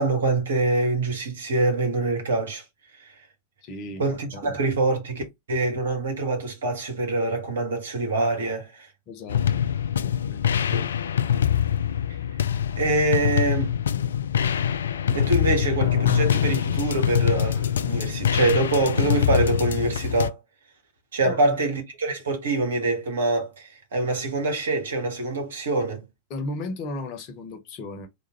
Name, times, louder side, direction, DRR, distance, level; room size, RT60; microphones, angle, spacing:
voice 1, 0.0-2.6 3.0-3.1 4.0-8.9 10.7-10.9 12.8-13.7 15.1-20.4 21.1-26.0, right 2 dB, 65° right, 1.5 m, -25 dB
voice 2, 3.6-4.0 4.3-4.6 9.1-9.6 9.9-10.5 21.2-21.8 26.3-28.1, left 2 dB, 40° left, 1.1 m, -35 dB
sound 1, 9.3-20.3, left 9 dB, 65° left, 0.3 m, -24 dB
3.7 x 2.7 x 4.3 m
figure-of-eight pair, 90°, 0 cm